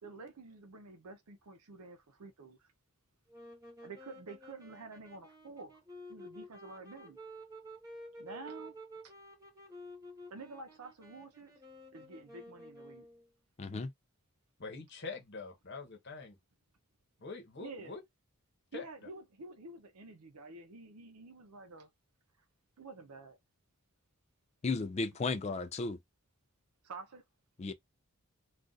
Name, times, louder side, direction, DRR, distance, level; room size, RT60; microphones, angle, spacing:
voice 1, 0.0-2.6 3.8-5.8 6.1-7.2 8.2-8.7 10.3-11.5 11.9-13.1 17.6-17.9 18.7-21.9 22.8-23.4 26.8-27.2, right 3 dB, 85° right, 0.6 m, -49 dB
sound 1, 3.3-13.3, equal, 15° right, 1.0 m, -52 dB
voice 2, 13.6-13.9 24.6-26.0 27.6-27.7, left 3 dB, 30° left, 0.3 m, -34 dB
voice 3, 14.6-16.4 17.2-18.0 18.7-19.1, left 4 dB, 50° left, 0.9 m, -45 dB
2.5 x 2.4 x 3.8 m
head